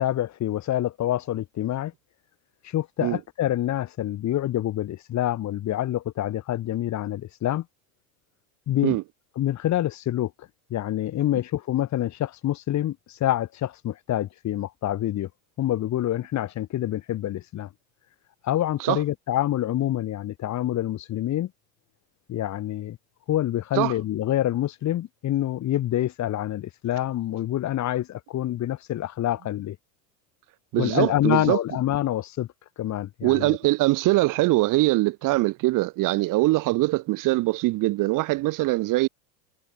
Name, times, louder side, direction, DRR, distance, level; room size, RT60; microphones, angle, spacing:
voice 1, 0.0-1.9 2.6-7.7 8.7-9.0 9.4-15.3 15.6-17.7 18.4-21.5 22.3-23.0 23.3-29.8 30.7-32.5 32.8-33.6, left 13 dB, 40° left, 3.9 m, -26 dB
voice 2, 30.7-31.6 33.2-39.1, right 20 dB, 45° right, 1.4 m, -22 dB
supercardioid pair, 110°, 43 cm